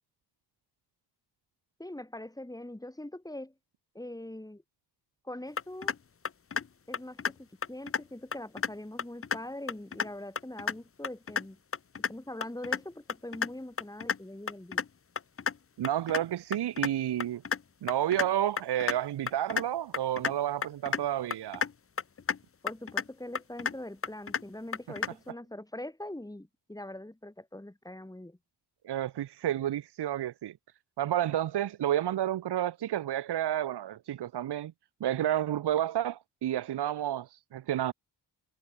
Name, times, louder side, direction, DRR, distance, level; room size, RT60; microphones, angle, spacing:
voice 1, 1.8-3.5 3.9-4.6 5.2-5.9 6.9-11.6 12.1-14.9 22.6-28.4, left 1 dB, 10° left, 5.9 m, -42 dB
sound 1, 5.6-5.9 6.2-6.7 6.9-7.3 7.6-8.0 8.3-8.7 9.0-9.4 9.7-10.1 10.4-10.7 11.0-11.4 11.7-12.1 12.4-12.8 13.1-13.5 13.8-14.2 14.5-14.8 15.2-15.5 15.8-16.2 16.5-16.9 17.2-17.6 17.9-18.3 18.6-18.9 19.3-19.6 19.9-20.3 20.6-21.0 21.3-21.7 22.0-22.4 22.7-23.0 23.3-23.7 24.0-24.4 24.7-25.1, left 6 dB, 35° left, 1.0 m, -31 dB
voice 2, 15.8-17.4 17.8-21.6 28.8-30.5 31.0-34.7 35.0-37.9, right 11 dB, 75° right, 0.9 m, -30 dB
wide cardioid pair, 115°, 41 cm